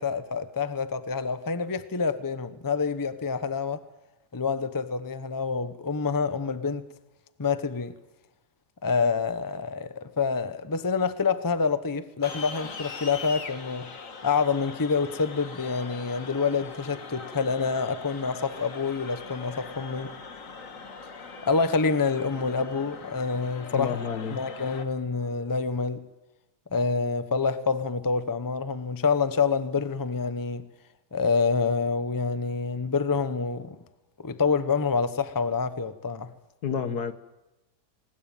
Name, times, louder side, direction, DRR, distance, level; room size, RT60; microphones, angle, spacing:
voice 1, 0.0-3.8 4.3-6.9 7.4-7.9 8.8-13.9 14.2-20.1 21.5-24.0 24.3-26.0 26.7-30.6 31.1-33.8 34.2-36.3, left 5 dB, 20° left, 0.7 m, -27 dB
sound 1, 12.2-24.8, left 4 dB, 55° left, 1.9 m, -41 dB
sound 2, 15.0-26.1, left 1 dB, 20° right, 5.0 m, -54 dB
voice 2, 23.7-24.4 36.6-37.1, left 7 dB, 70° left, 1.7 m, -29 dB
20.5 x 19.5 x 9.2 m
omnidirectional pair, 1.8 m